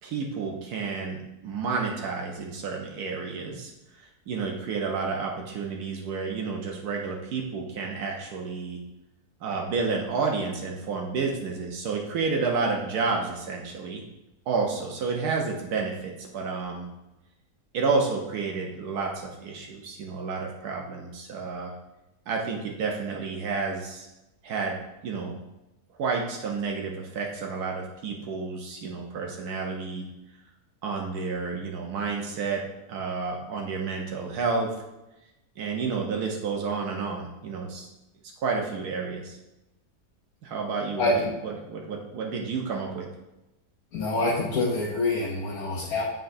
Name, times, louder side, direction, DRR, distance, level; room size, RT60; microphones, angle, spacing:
voice 1, 0.0-8.8 9.4-14.0 14.5-16.9 17.7-21.7 22.3-24.1 24.4-24.8 25.0-25.4 26.0-30.0 30.8-32.6 32.9-34.7 35.6-37.9 38.4-39.4 40.4-43.1, right 4 dB, 80° right, 0 dB, 1.3 m, -30 dB
voice 2, 41.0-41.3 43.9-46.0, left 2 dB, 75° left, -3 dB, 1.3 m, -26 dB
7.7 x 5.2 x 2.6 m, 0.97 s
omnidirectional pair, 1.6 m